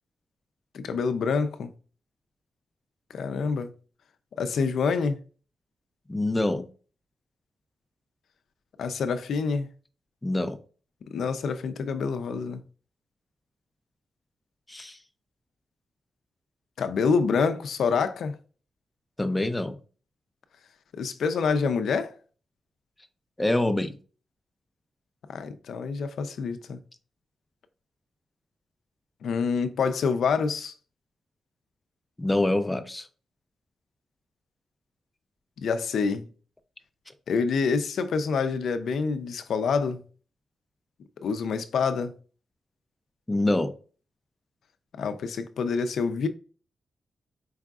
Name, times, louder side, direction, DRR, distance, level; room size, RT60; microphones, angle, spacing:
voice 1, 0.7-1.7 3.1-3.7 4.4-5.2 8.8-9.7 11.1-12.6 16.8-18.3 20.9-22.1 25.3-26.8 29.2-30.7 35.6-36.3 37.3-40.0 41.2-42.1 45.0-46.3, left 5 dB, 80° left, 0.5 m, -27 dB
voice 2, 6.1-6.7 10.2-10.6 14.7-15.0 19.2-19.8 23.4-23.9 32.2-33.1 43.3-43.7, left 1 dB, 10° left, 0.4 m, -25 dB
4.7 x 3.6 x 2.3 m
wide cardioid pair, 165°, 0 cm